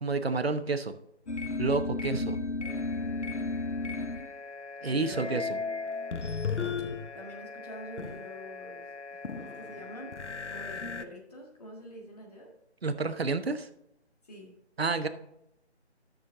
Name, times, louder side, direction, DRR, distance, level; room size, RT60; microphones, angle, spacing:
voice 1, 0.0-0.9 1.6-2.3 4.8-5.4 12.8-13.7 14.8-15.1, right 3 dB, 60° right, 10 dB, 1.0 m, -29 dB
sound 1, 1.3-11.0, left 4 dB, 85° left, 0.9 m, -35 dB
voice 2, 1.7-4.0 4.8-5.5 7.1-10.2 10.5-12.6 14.2-14.6, equal, 35° left, -1 dB, 1.7 m, -46 dB
11.0 x 6.5 x 3.8 m, 0.82 s
figure-of-eight pair, 155°, 34 cm